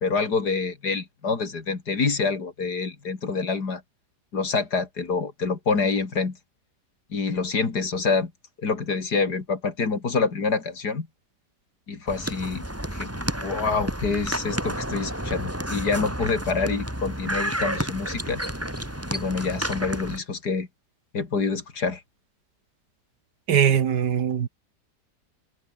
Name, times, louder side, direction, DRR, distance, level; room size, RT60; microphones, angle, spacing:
voice 1, 0.0-3.8 4.3-6.4 7.1-8.3 8.6-11.1 11.9-12.6 12.9-18.4 19.1-20.7 21.1-22.0, left 4 dB, 65° left, 3.4 m, -26 dB
sound 1, 12.1-20.2, right 1 dB, 10° right, 3.9 m, -31 dB
voice 2, 23.5-24.5, right 8 dB, 75° right, 1.9 m, -21 dB
omnidirectional pair, 1.8 m